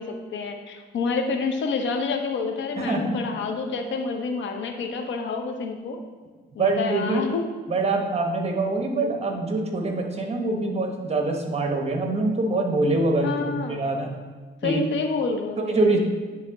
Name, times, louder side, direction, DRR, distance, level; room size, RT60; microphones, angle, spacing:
voice 1, 0.0-6.0 6.5-7.4 13.2-13.8 14.6-16.0, left 4 dB, 70° left, 4 dB, 0.8 m, -28 dB
voice 2, 2.8-3.2 6.6-7.2 7.7-14.1 14.6-14.8 15.7-16.0, right 2 dB, 30° right, 3 dB, 1.1 m, -24 dB
9.9 x 3.5 x 3.7 m, 1.5 s
cardioid pair, 90°, 20 cm